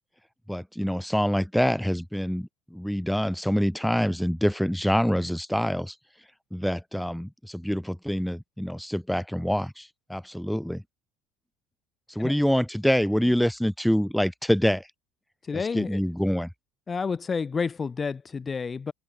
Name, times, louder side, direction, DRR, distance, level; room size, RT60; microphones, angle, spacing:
voice 1, 0.5-5.9 6.5-10.8 12.1-14.9 15.5-16.5, equal, ahead, 7.3 m, -26 dB
voice 2, 15.5-16.0 16.9-18.9, left 5 dB, 20° left, 6.5 m, -30 dB
cardioid pair, 135°, 0 cm